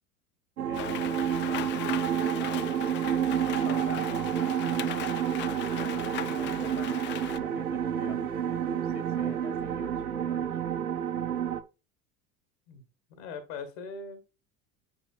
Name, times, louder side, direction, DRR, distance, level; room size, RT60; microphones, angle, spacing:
voice 1, 0.6-3.0 3.4-5.0 5.9-10.6, left 3 dB, 80° left, 8 dB, 2.2 m, -45 dB
sound 1, 0.6-11.6, right 9 dB, 85° right, 0.8 m, -29 dB
Rain, 0.7-7.4, left 13 dB, 30° left, 0.4 m, -38 dB
voice 2, 13.2-14.3, left 4 dB, 65° left, 8 dB, 1.8 m, -40 dB
9.0 x 5.3 x 2.4 m, 0.30 s
hypercardioid pair, 85°, 43 cm